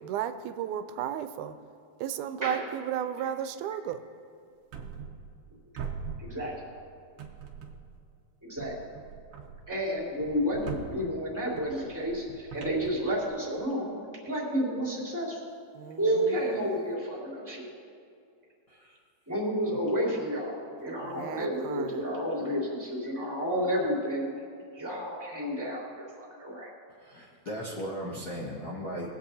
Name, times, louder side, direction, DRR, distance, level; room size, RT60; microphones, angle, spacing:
voice 1, 0.0-1.5 2.0-4.0 15.8-16.7 21.1-22.0, right 10 dB, 85° right, 10 dB, 2.0 m, -34 dB
sound 1, 4.7-5.5 5.8-6.8 7.2-8.0 8.6-13.7, right 6 dB, 65° right, 1.6 m, -42 dB
voice 2, 6.2-6.7 8.4-8.7 9.7-14.0 14.2-15.4 16.0-17.7 19.3-24.3 24.7-26.7, equal, 5° right, -8 dB, 2.7 m, -31 dB
voice 3, 27.0-29.1, equal, 55° left, -4 dB, 1.1 m, -37 dB
21.5 x 8.0 x 2.7 m, 2.4 s
omnidirectional pair, 3.4 m